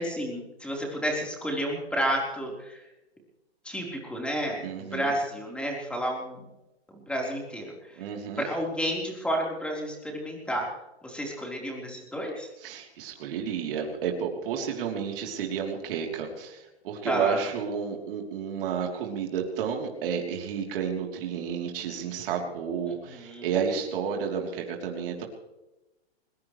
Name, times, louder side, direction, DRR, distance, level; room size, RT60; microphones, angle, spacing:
voice 1, 0.0-2.8 3.6-6.4 6.9-8.0 8.4-10.7 11.0-12.5 17.0-17.5 22.9-23.5, equal, 5° left, -1 dB, 4.0 m, -31 dB
voice 2, 4.6-5.1 8.0-8.4 12.6-25.2, right 7 dB, 55° right, 1 dB, 3.4 m, -31 dB
21.0 x 21.0 x 3.2 m, 0.97 s
hypercardioid pair, 145°, 33 cm